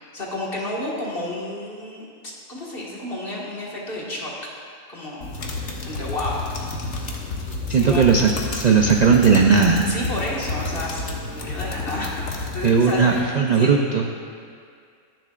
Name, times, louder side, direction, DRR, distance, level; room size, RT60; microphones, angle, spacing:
voice 1, 0.1-2.1 2.5-4.3 4.9-5.3 5.5-6.5 7.7-8.0 9.8-13.7, left 1 dB, 45° left, -5 dB, 2.0 m, -31 dB
sound 1, 5.2-13.2, left 3 dB, 60° left, 1.4 m, -30 dB
voice 2, 7.7-9.9 12.6-14.0, right 5 dB, 50° right, 1 dB, 0.5 m, -17 dB
22.5 x 7.5 x 2.5 m, 2.2 s
omnidirectional pair, 1.4 m